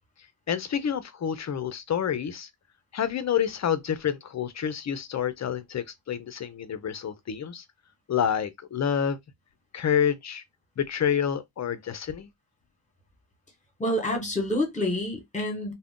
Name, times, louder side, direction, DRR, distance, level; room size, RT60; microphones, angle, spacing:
voice 1, 0.5-2.5 2.9-7.6 8.1-9.2 9.7-10.4 10.8-12.3, left 8 dB, 35° left, 0.4 m, -28 dB
voice 2, 13.8-15.7, left 1 dB, 15° left, 1.0 m, -27 dB
2.4 x 2.1 x 3.5 m
wide cardioid pair, 110°, 49 cm